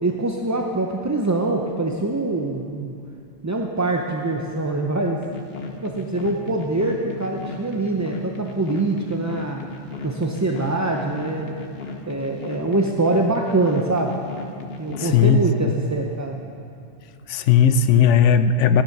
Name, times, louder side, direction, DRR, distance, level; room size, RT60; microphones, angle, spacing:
voice 1, 0.0-2.9 3.4-5.2 5.8-9.6 10.0-11.5 12.1-14.2 14.8-16.4, right 2 dB, 20° right, 1 dB, 0.5 m, -24 dB
sound 1, 5.2-15.1, left 3 dB, 55° left, 1.3 m, -35 dB
voice 2, 14.9-15.7 17.3-18.8, left 7 dB, 80° left, 11 dB, 0.9 m, -17 dB
15.0 x 9.8 x 5.9 m, 2.5 s
omnidirectional pair, 1.2 m